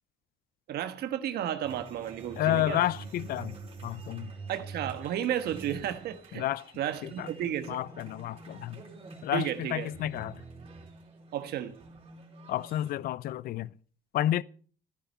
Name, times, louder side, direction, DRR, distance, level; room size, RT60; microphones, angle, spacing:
voice 1, 0.7-2.8 4.5-6.5 6.8-7.8 9.3-9.9 11.3-11.7, right 10 dB, 70° right, 1.4 m, -33 dB
sound 1, 1.6-12.9, right 4 dB, 35° right, 4.0 m, -46 dB
voice 2, 2.4-3.6 3.8-4.3 6.3-6.7 7.0-7.3 7.7-8.8 9.2-10.4 12.5-13.7 14.1-14.4, left 13 dB, 60° left, 0.5 m, -30 dB
14.5 x 10.5 x 5.5 m
cardioid pair, 110°, 17 cm